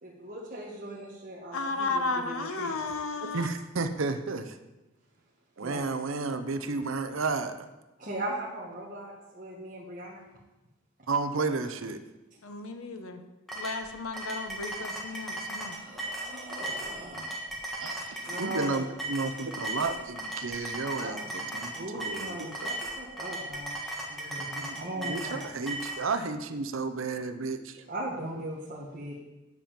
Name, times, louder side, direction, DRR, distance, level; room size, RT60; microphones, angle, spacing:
voice 1, 0.0-3.1 5.6-5.8 8.0-10.2 15.7-17.4 18.2-18.9 20.6-20.7 21.0-21.2 21.7-25.4 27.9-29.2, right 1 dB, 40° right, -6 dB, 1.6 m, -39 dB
voice 2, 1.5-3.5 12.4-13.2 13.5-15.8, left 3 dB, 75° left, 7 dB, 1.0 m, -33 dB
voice 3, 3.3-4.5 5.6-7.7 11.1-12.0 17.8-22.4 24.4-27.8, right 3 dB, 65° right, 9 dB, 0.7 m, -32 dB
sound 1, 13.5-26.0, right 1 dB, ahead, 1.6 m, -36 dB
9.7 x 5.2 x 7.3 m, 1.0 s
head